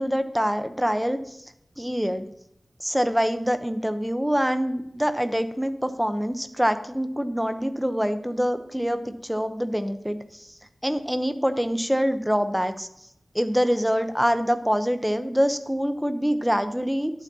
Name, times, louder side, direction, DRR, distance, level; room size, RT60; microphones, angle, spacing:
voice 1, 0.0-1.4 1.8-2.3 2.8-10.5 10.8-12.9 13.3-17.1, equal, 5° right, 9 dB, 0.9 m, -25 dB
11.5 x 9.0 x 2.9 m, 0.76 s
wide cardioid pair, 80°, 0 cm